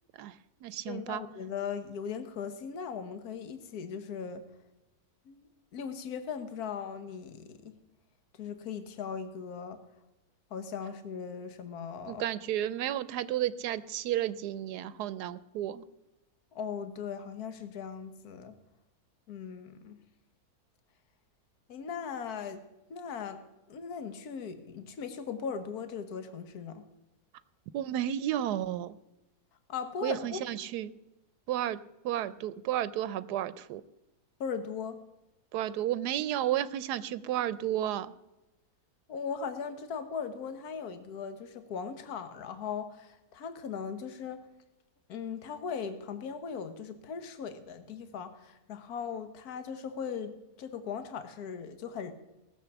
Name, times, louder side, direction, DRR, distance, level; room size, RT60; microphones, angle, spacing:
voice 1, 0.2-1.2 12.1-15.8 27.7-29.0 30.0-30.9 31.5-31.8 32.0-33.8 35.5-38.1, right 12 dB, 90° right, 16 dB, 1.2 m, -32 dB
voice 2, 0.9-4.5 5.3-5.4 5.7-7.8 8.4-9.8 10.5-12.2 16.5-18.5 19.3-20.0 21.7-22.6 22.9-23.4 23.7-26.8 29.7-30.4 34.4-35.0 39.1-44.4 45.1-52.1, left 6 dB, 75° left, 9 dB, 1.6 m, -38 dB
18.0 x 7.1 x 7.0 m, 0.98 s
omnidirectional pair, 1.7 m